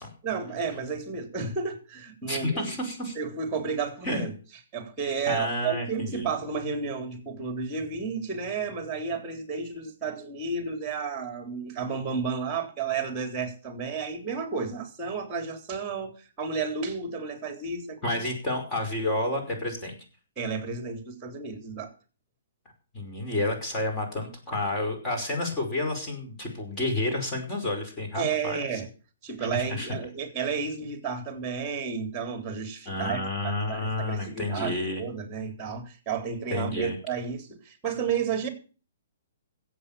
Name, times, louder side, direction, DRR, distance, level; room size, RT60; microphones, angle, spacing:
voice 1, 0.2-2.6 3.2-4.3 4.7-18.2 20.4-21.9 28.1-28.9 29.2-38.5, right 5 dB, 20° right, 3.7 m, -32 dB
voice 2, 2.3-3.2 4.0-4.2 5.3-6.3 18.0-20.0 22.9-28.8 29.4-30.0 32.9-35.0 36.5-37.0, left 1 dB, 20° left, 5.2 m, -30 dB
15.0 x 8.3 x 7.1 m
hypercardioid pair, 150°, 0 cm